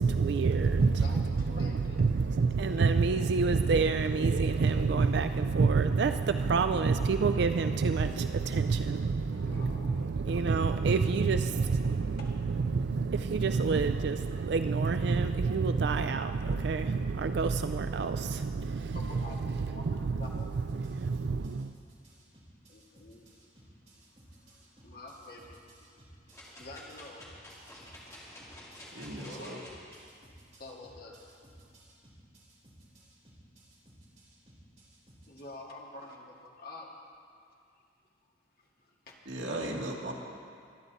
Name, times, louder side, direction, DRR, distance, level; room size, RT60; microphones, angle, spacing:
voice 1, 0.0-21.7, right 4 dB, 60° right, 9 dB, 0.4 m, -28 dB
voice 2, 0.9-2.2 2.8-2.9 9.1-10.6 12.2-12.4 17.2-17.4 18.9-20.5 22.7-23.3 23.6-23.7 24.3-25.9 26.6-27.5 29.1-29.7 30.5-31.4 35.3-36.9 38.6-39.2, left 2 dB, 50° left, -2 dB, 2.0 m, -48 dB
sound 1, 19.9-35.4, right 1 dB, 40° right, 3.4 m, -58 dB
sound 2, 26.3-30.0 30.5-30.6, left 1 dB, 15° left, 2.6 m, -50 dB
voice 3, 28.9-29.6 39.3-40.1, right 1 dB, 85° right, -2 dB, 2.2 m, -36 dB
24.0 x 10.0 x 4.1 m, 2.3 s
head